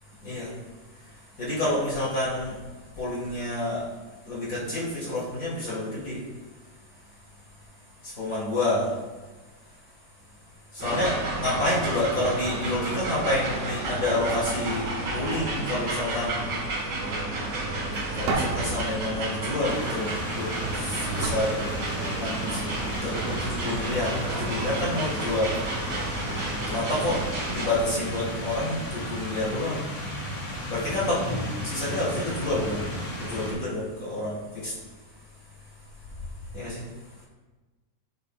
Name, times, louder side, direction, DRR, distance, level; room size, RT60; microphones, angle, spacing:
voice 1, 0.2-0.5 1.0-2.6 2.9-3.9 4.2-6.2 8.0-9.0 10.7-16.4 18.1-21.7 22.1-22.6 23.0-25.5 26.6-29.9 30.7-34.8 36.5-36.8, left 1 dB, 60° left, -6 dB, 0.8 m, -29 dB
sound 1, 10.8-27.7, right 2 dB, 40° right, 2.5 m, -31 dB
sound 2, 18.3-20.5 21.1-22.5, right 3 dB, 75° right, 2.9 m, -33 dB
sound 3, 19.6-33.5, equal, 35° left, 3.0 m, -35 dB
12.0 x 6.5 x 2.4 m, 1.2 s
omnidirectional pair, 5.0 m